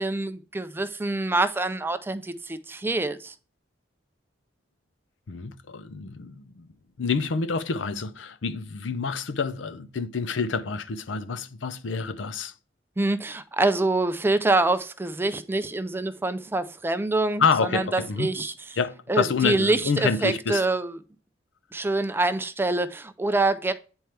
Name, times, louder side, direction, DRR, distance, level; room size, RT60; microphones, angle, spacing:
voice 1, 0.0-3.3 13.0-18.5 19.1-21.0 21.7-23.7, right 2 dB, 10° right, 0.4 m, -25 dB
voice 2, 5.3-6.7 7.0-12.5 17.4-18.3 18.8-20.6, left 5 dB, 90° left, 0.6 m, -27 dB
9.2 x 4.4 x 3.3 m
head